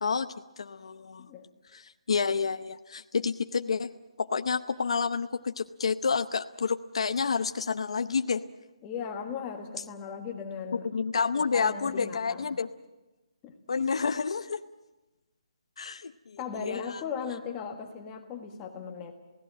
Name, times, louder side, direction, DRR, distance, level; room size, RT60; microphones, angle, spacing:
voice 1, 0.0-1.3 1.7-3.9 4.2-8.4 10.7-12.7 13.7-14.6 15.8-17.0, left 5 dB, 60° left, 8 dB, 0.7 m, -29 dB
voice 2, 8.8-10.9 11.3-12.6 13.4-13.5 16.4-19.1, left 6 dB, 15° left, 3 dB, 1.6 m, -37 dB
27.5 x 17.0 x 7.5 m, 1.1 s
hypercardioid pair, 175°, 3 cm